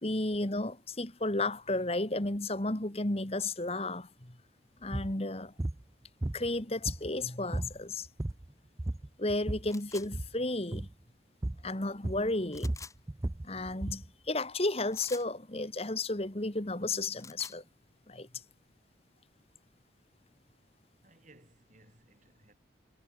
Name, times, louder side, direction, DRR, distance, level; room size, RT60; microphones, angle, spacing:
voice 1, 0.0-4.4 4.8-5.5 6.3-8.1 9.2-10.9 11.6-12.7 13.4-17.6 18.1-18.3, left 2 dB, 35° left, 1.8 m, -33 dB
sound 1, 4.8-5.1 5.6-5.8 6.2-7.2 7.5-7.8 8.0-8.5 8.8-9.7 10.0-10.3 10.7-10.9 11.4-11.7 12.0-14.1, right 1 dB, 15° right, 0.4 m, -35 dB
sound 2, 9.7-10.1 12.5-13.0 14.9-15.3 17.0-17.6, left 5 dB, 15° left, 4.5 m, -47 dB
voice 2, 21.0-22.5, right 2 dB, 40° right, 7.4 m, -61 dB
head